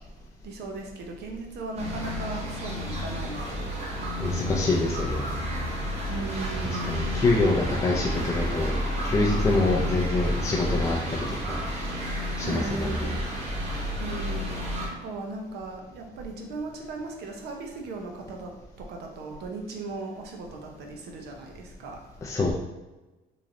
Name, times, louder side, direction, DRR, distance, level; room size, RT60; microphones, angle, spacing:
voice 1, 0.4-3.8 6.1-7.0 12.4-13.2 14.0-14.5 14.9-22.0, right 2 dB, 75° right, 2 dB, 0.7 m, -37 dB
sound 1, 1.8-14.9, equal, 40° right, 1.0 m, -31 dB
voice 2, 4.2-5.3 6.9-11.6 12.4-13.2 22.2-22.5, left 2 dB, 20° left, -3 dB, 0.4 m, -26 dB
3.1 x 2.6 x 3.8 m, 1.1 s
cardioid pair, 110°, 17 cm